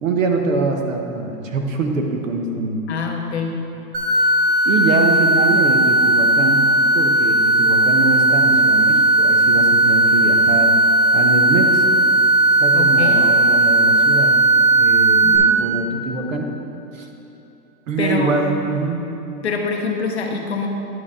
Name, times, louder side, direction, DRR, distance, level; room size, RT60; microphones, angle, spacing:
voice 1, 0.0-2.8 4.6-10.7 11.1-11.8 12.6-14.4 14.8-16.6 16.9-17.1 17.9-19.0, right 3 dB, 50° right, 3 dB, 0.9 m, -23 dB
voice 2, 2.9-3.6 12.7-13.3 15.2-15.5 18.0-18.3 19.4-20.7, left 5 dB, 45° left, 2 dB, 0.6 m, -25 dB
sound 1, 3.9-15.4, right 2 dB, 30° right, 1.3 m, -15 dB
10.5 x 6.3 x 3.6 m, 2.9 s
hypercardioid pair, 180°, 49 cm